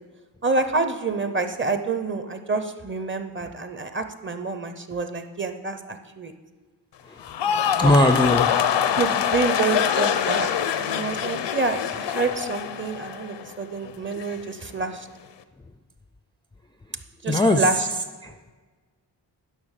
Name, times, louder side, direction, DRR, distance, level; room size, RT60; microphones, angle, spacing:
voice 1, 0.4-6.3 7.4-8.0 9.0-15.1 17.2-17.9, right 4 dB, 30° right, 8 dB, 0.7 m, -28 dB
sound 1, 7.2-13.5 13.8-14.4, left 9 dB, 85° left, 0.7 m, -24 dB
voice 2, 7.8-8.6 17.3-17.6 18.2-18.3, left 1 dB, 10° left, 6 dB, 0.3 m, -19 dB
11.0 x 5.7 x 6.5 m, 1.4 s
wide cardioid pair, 155°, 42 cm